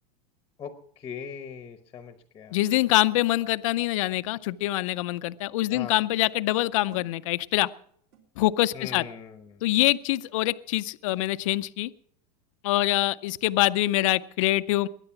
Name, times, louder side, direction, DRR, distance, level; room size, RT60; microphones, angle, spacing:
voice 1, 0.6-2.6 5.7-6.0 8.7-9.6, left 7 dB, 15° left, 9 dB, 0.9 m, -40 dB
voice 2, 2.5-7.7 8.4-9.0 9.6-11.9 12.6-14.9, left 17 dB, 55° left, 14 dB, 0.5 m, -25 dB
sound 1, 2.7-2.8 4.1-4.4 4.8-5.1 6.2-6.5 6.9-7.2 8.1-8.2 8.6-9.1 10.3-10.4 11.1-11.2, right 8 dB, 55° right, 3.4 m, -54 dB
21.5 x 9.8 x 5.9 m, 0.64 s
supercardioid pair, 170°, 21 cm